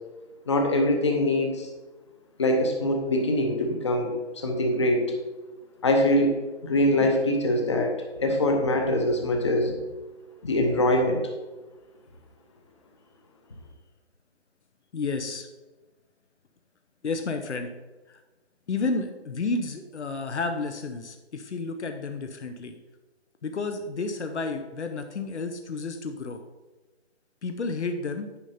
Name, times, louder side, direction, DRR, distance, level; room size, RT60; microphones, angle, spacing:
voice 1, 0.5-1.7 2.4-4.1 4.4-5.1 5.8-8.0 8.2-9.7 10.4-11.2, left 1 dB, 25° left, 3 dB, 0.9 m, -23 dB
voice 2, 14.9-15.5 17.0-17.7 18.1-18.2 18.7-22.7 23.4-26.4 27.4-28.3, left 3 dB, 80° left, 6 dB, 0.9 m, -31 dB
9.9 x 5.2 x 4.3 m, 1.2 s
hypercardioid pair, 170°, 34 cm